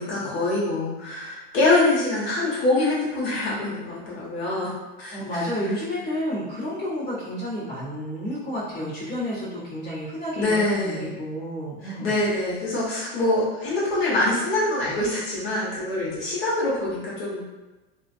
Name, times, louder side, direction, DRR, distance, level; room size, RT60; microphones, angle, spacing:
voice 1, 0.0-5.6 10.3-11.1 11.8-17.4, left 2 dB, 75° left, -7 dB, 1.0 m, -25 dB
voice 2, 5.1-12.1, equal, 35° left, -10 dB, 1.1 m, -30 dB
2.4 x 2.2 x 2.5 m, 1.1 s
supercardioid pair, 165°, 31 cm